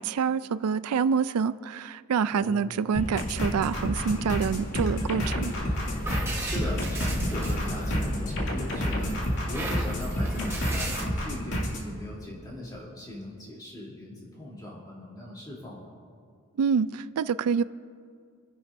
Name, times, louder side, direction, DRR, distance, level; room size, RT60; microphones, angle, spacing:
voice 1, 0.0-5.5 16.6-17.6, right 6 dB, 85° right, 15 dB, 0.4 m, -27 dB
voice 2, 2.3-2.7 6.2-15.9, left 1 dB, 15° left, -5 dB, 3.1 m, -39 dB
sound 1, 2.9-11.9, equal, 55° left, 2.4 m, -30 dB
sound 2, 2.9-10.9, left 1 dB, 35° left, 0.5 m, -38 dB
sound 3, 5.7-8.3 8.7-11.0, right 2 dB, 10° right, 1.2 m, -37 dB
29.0 x 11.0 x 2.6 m, 2.2 s
head